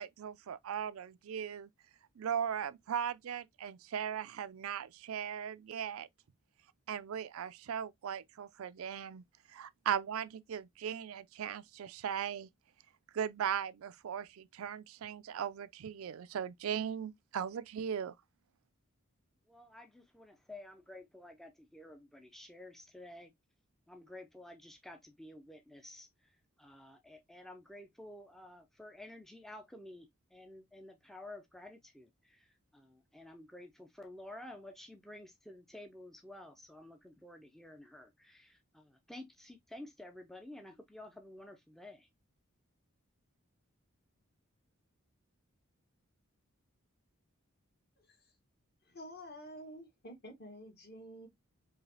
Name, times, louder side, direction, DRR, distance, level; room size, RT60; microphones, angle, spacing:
voice 1, 0.0-1.7 2.2-6.1 6.9-9.2 9.5-12.5 13.1-18.1, right 8 dB, 80° right, 0.4 m, -38 dB
voice 2, 19.5-23.3 23.9-42.1, left 1 dB, ahead, 0.4 m, -52 dB
voice 3, 48.0-48.3 48.8-51.3, equal, 45° left, 1.3 m, -50 dB
4.8 x 2.8 x 2.7 m
head